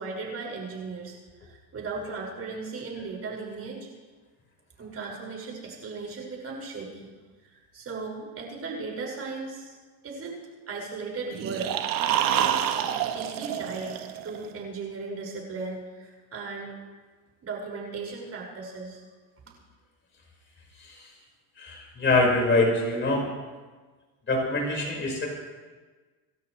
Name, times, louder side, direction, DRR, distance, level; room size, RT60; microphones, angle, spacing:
voice 1, 0.0-3.9 4.8-7.1 7.4-9.8 10.0-10.4 10.7-11.7 12.0-12.7 13.0-14.0 14.2-16.7 17.4-19.0, right 4 dB, 35° right, -2 dB, 6.0 m, -37 dB
sound 1, 11.3-14.5, right 10 dB, 50° right, 1.3 m, -27 dB
voice 2, 21.6-23.3 24.3-25.3, left 2 dB, 25° left, -1 dB, 5.4 m, -24 dB
27.5 x 13.0 x 3.3 m, 1.4 s
cardioid pair, 125°, 43 cm